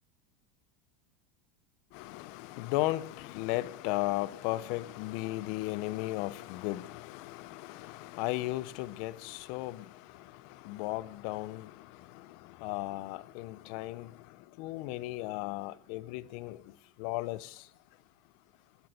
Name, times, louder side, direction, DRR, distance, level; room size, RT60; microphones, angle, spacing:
voice 1, 1.9-9.9 10.6-11.7 12.6-14.1 14.6-16.6 17.0-17.5, left 18 dB, 65° left, 0.8 m, -35 dB
15.5 x 13.0 x 6.8 m
supercardioid pair, 110°, 0 cm